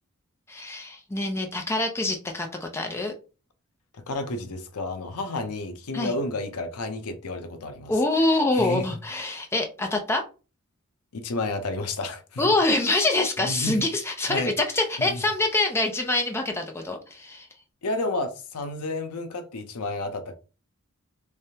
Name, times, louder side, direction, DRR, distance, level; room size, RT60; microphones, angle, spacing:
voice 1, 0.5-3.1 5.9-6.1 7.9-10.2 12.4-17.5, left 2 dB, 10° left, 0.5 m, -25 dB
voice 2, 4.1-7.9 8.5-8.8 11.1-12.5 13.4-13.8 14.3-14.5 15.0-15.2 17.8-20.3, left 2 dB, 85° left, 0.6 m, -31 dB
3.3 x 3.3 x 2.8 m
head